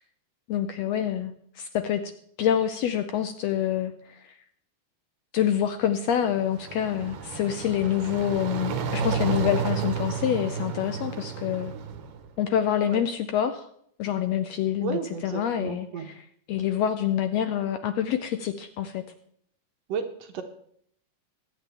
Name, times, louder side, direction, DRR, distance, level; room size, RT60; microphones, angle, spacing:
voice 1, 0.5-2.0 2.4-4.4 5.3-11.7 12.4-13.7 14.0-19.0, left 10 dB, 80° left, 8 dB, 1.5 m, -27 dB
sound 1, 6.3-12.3, right 6 dB, 90° right, 2.8 m, -31 dB
voice 2, 14.8-16.1 19.9-20.4, right 6 dB, 65° right, 6 dB, 1.8 m, -33 dB
23.0 x 8.9 x 3.4 m, 0.67 s
omnidirectional pair, 3.7 m